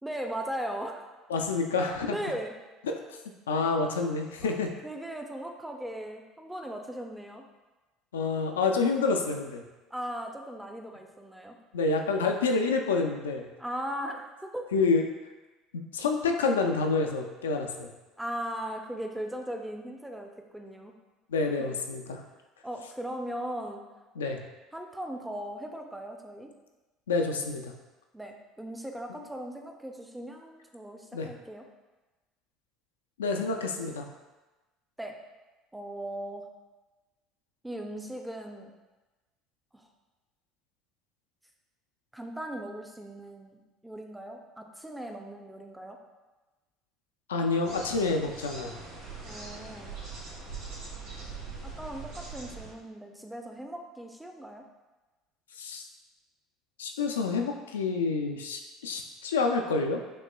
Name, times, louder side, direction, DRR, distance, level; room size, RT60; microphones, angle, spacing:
voice 1, 0.0-1.0 2.1-2.5 4.4-4.6 4.8-7.4 9.9-11.6 13.6-14.7 18.2-20.9 21.6-21.7 22.6-23.8 24.7-26.5 28.1-31.6 35.0-35.2 35.7-36.4 37.6-38.7 39.7-39.9 42.1-46.0 49.2-50.0 51.8-54.6, right 1 dB, 5° right, 3 dB, 0.5 m, -38 dB
voice 2, 1.3-2.2 3.5-4.7 8.1-9.6 11.7-13.5 14.7-15.1 15.7-17.9 21.3-22.2 24.2-24.4 27.1-27.7 31.1-31.3 33.2-34.1 47.3-48.8 55.6-55.8 56.8-60.0, left 4 dB, 85° left, 3 dB, 0.3 m, -28 dB
sound 1, 47.6-52.7, right 4 dB, 85° right, 1.4 m, -42 dB
5.3 x 2.9 x 2.2 m, 1.2 s
hypercardioid pair, 70°, 0 cm